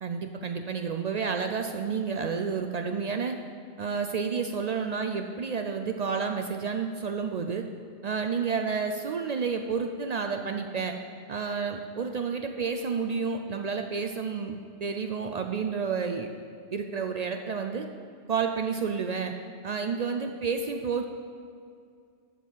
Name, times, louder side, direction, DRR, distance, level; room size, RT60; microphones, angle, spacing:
voice 1, 0.0-3.4 3.8-7.6 8.0-11.0 11.3-16.3 16.7-17.9 18.3-19.3 19.6-21.1, right 5 dB, 70° right, 4 dB, 0.4 m, -30 dB
10.5 x 4.8 x 7.4 m, 2.3 s
omnidirectional pair, 1.2 m